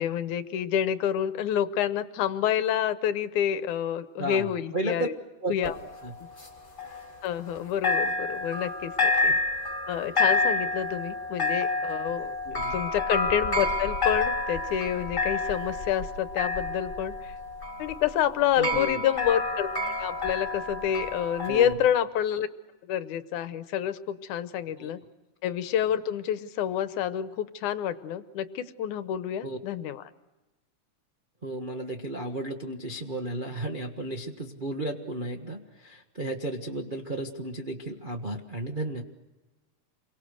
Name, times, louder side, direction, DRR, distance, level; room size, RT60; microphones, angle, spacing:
voice 1, 0.0-5.2 5.5-5.8 7.2-9.3 9.9-17.3 17.8-22.5 22.9-25.0 25.4-30.1, left 10 dB, 75° left, 12 dB, 2.4 m, -28 dB
voice 2, 4.2-5.1 5.4-5.7 6.0-6.1 9.3-9.4 12.4-12.8 18.6-19.0 21.5-21.8 24.8-24.9 29.4-29.6 31.4-39.0, right 1 dB, 55° right, 1 dB, 0.5 m, -34 dB
sound 1, 5.6-7.6 7.8-21.7, left 3 dB, 15° left, 3.3 m, -29 dB
28.5 x 23.5 x 6.6 m, 1.1 s
omnidirectional pair, 3.6 m